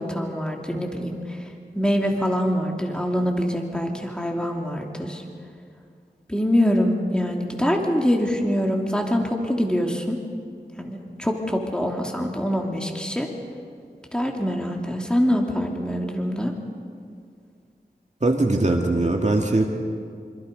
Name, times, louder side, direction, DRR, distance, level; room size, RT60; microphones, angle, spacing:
voice 1, 0.0-1.4 1.7-5.2 6.3-10.2 10.8-13.3 14.1-16.5, equal, 5° left, 1 dB, 3.0 m, -24 dB
voice 2, 18.2-19.6, right 2 dB, 45° right, 1 dB, 2.4 m, -21 dB
27.0 x 26.5 x 5.5 m, 2.2 s
wide cardioid pair, 55°, 17 cm